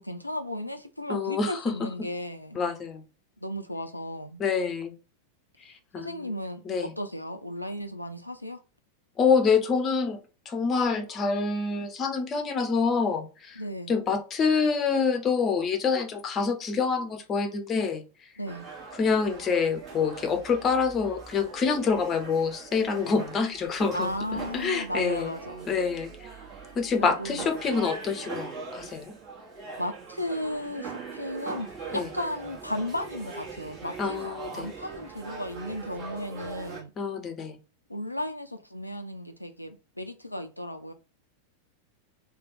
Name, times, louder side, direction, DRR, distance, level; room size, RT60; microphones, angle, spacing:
voice 1, 0.0-2.6 3.4-4.4 6.0-6.6 7.0-8.6 13.6-14.0 18.4-18.7 23.9-25.7 27.0-27.5 29.8-36.9 37.9-40.9, left 1 dB, 85° left, 0.5 m, -35 dB
voice 2, 1.1-1.9 2.5-3.0 4.4-4.9 5.6-6.3 6.6-6.9 9.2-10.2 10.5-13.6 13.9-18.0 19.0-24.1 24.5-25.3 25.7-26.3 26.7-29.2 31.9-32.1 34.0-34.7 37.0-37.6, left 5 dB, 25° left, 0.7 m, -26 dB
sound 1, 18.5-36.8, right 5 dB, 35° right, 1.4 m, -41 dB
3.3 x 2.3 x 3.9 m
figure-of-eight pair, 90°, 0 cm